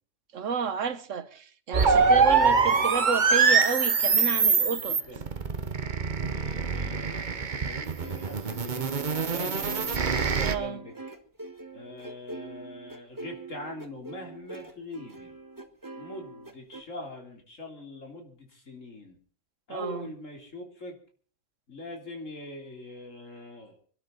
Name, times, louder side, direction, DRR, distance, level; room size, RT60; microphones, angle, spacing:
voice 1, 0.3-5.0 10.4-10.8 19.7-20.1, right 6 dB, 65° right, 1.5 m, -31 dB
sound 1, 1.7-10.5, right 5 dB, 40° right, 1.0 m, -24 dB
voice 2, 1.9-3.0 4.7-5.3 6.3-9.7 10.1-10.9 11.7-15.3 16.0-19.2 19.7-21.0 21.7-23.8, left 1 dB, 65° left, 3.7 m, -42 dB
sound 2, 7.9-16.8, right 3 dB, 15° right, 1.4 m, -43 dB
26.0 x 12.0 x 4.0 m
omnidirectional pair, 1.4 m